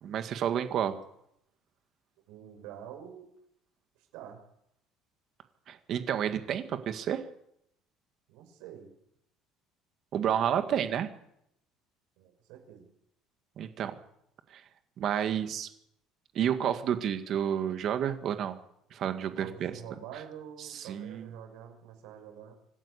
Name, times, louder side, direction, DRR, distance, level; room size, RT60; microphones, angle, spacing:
voice 1, 0.0-1.0 5.7-7.2 10.1-11.1 13.6-13.9 14.5-14.6 15.0-15.7 16.3-18.6 18.9-19.7 20.6-21.3, right 9 dB, 40° right, 9 dB, 1.8 m, -30 dB
voice 2, 2.3-3.3 4.1-4.4 8.3-8.9 12.2-12.9 19.2-22.5, right 9 dB, 80° right, 4 dB, 6.1 m, -46 dB
26.0 x 12.0 x 8.3 m, 0.76 s
cardioid pair, 165°, 0 cm